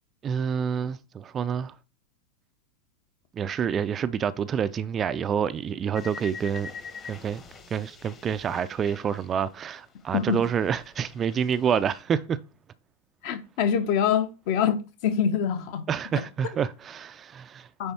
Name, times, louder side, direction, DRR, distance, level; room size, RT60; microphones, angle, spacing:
voice 1, 0.2-1.7 3.4-6.7 7.1-7.4 7.7-12.4 15.9-17.7, right 7 dB, 25° right, 0.4 m, -28 dB
sound 1, 5.9-9.9 10.1-12.0, left 5 dB, 25° left, 1.2 m, -44 dB
voice 2, 13.2-15.9 16.1-16.2 17.8-17.9, left 8 dB, 45° left, 1.0 m, -25 dB
9.1 x 3.4 x 4.4 m
figure-of-eight pair, 90°, 0 cm